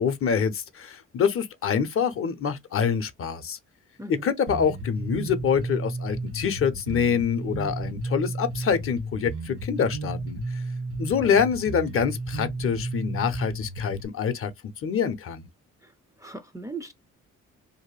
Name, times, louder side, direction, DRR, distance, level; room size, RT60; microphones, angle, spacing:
voice 1, 0.0-3.6 4.2-10.4 11.0-14.5 14.8-15.5, left 7 dB, 45° left, 0.6 m, -26 dB
voice 2, 4.0-4.4 11.2-11.4 15.8-15.9 16.2-16.9, right 2 dB, 10° right, 0.4 m, -38 dB
Bass guitar, 4.5-14.1, right 2 dB, 70° right, 1.4 m, -33 dB
2.6 x 2.2 x 2.9 m
cardioid pair, 90°, 30 cm